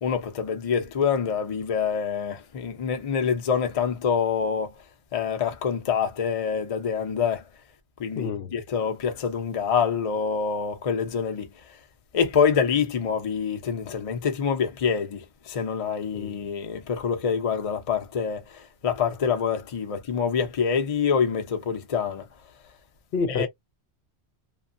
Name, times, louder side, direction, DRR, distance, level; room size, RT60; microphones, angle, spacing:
voice 1, 0.0-4.7 5.1-7.4 8.0-11.5 12.1-22.2 23.3-23.5, left 6 dB, 40° left, 0.6 m, -26 dB
voice 2, 8.2-8.5 16.1-16.4 23.1-23.5, left 5 dB, 70° left, 0.8 m, -28 dB
2.9 x 2.3 x 2.5 m
omnidirectional pair, 1.1 m